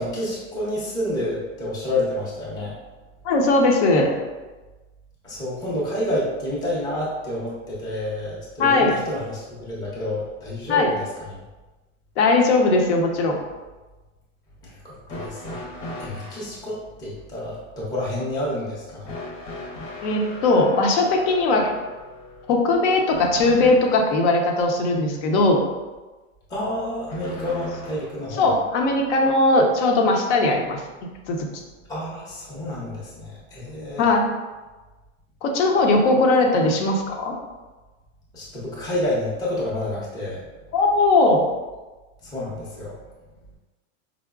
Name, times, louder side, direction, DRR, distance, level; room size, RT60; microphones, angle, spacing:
voice 1, 0.0-2.8 5.2-11.3 14.6-15.6 16.0-19.1 26.5-28.5 31.9-34.0 38.3-40.4 42.2-43.0, left 1 dB, 10° left, -7 dB, 0.6 m, -29 dB
voice 2, 3.2-4.2 8.6-9.0 10.7-10.9 12.2-13.4 20.0-21.7 22.5-25.6 28.4-31.6 34.0-34.3 35.4-37.3 40.7-41.5, left 2 dB, 65° left, 2 dB, 0.8 m, -19 dB
sound 1, 15.1-16.5 19.0-24.1 27.1-28.2 29.4-29.5 30.5-30.6, left 2 dB, 80° left, 1.1 m, -37 dB
4.8 x 2.0 x 2.3 m, 1.2 s
supercardioid pair, 145°, 37 cm